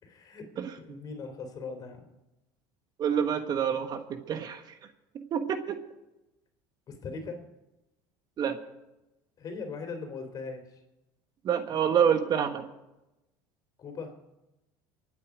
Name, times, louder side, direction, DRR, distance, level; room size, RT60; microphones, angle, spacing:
voice 1, 0.0-0.5 0.8-2.1 6.9-7.4 9.4-10.8 13.8-14.2, left 4 dB, 40° left, 6 dB, 3.6 m, -39 dB
voice 2, 3.0-4.6 5.3-5.8 8.4-8.6 11.4-12.6, right 8 dB, 45° right, 8 dB, 1.4 m, -27 dB
25.0 x 8.7 x 5.0 m, 0.95 s
supercardioid pair, 95°, 10 cm